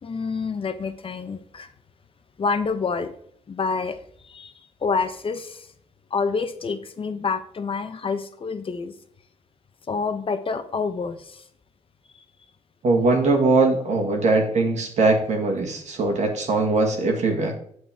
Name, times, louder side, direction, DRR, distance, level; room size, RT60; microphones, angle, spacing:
voice 1, 0.0-1.7 2.4-3.1 3.5-4.0 4.2-4.5 4.8-5.7 6.1-8.9 9.9-11.4, left 4 dB, 45° left, 9 dB, 1.0 m, -27 dB
voice 2, 12.8-17.6, right 3 dB, 65° right, 2 dB, 1.9 m, -21 dB
7.8 x 7.2 x 3.6 m, 0.64 s
cardioid pair, 70°, 13 cm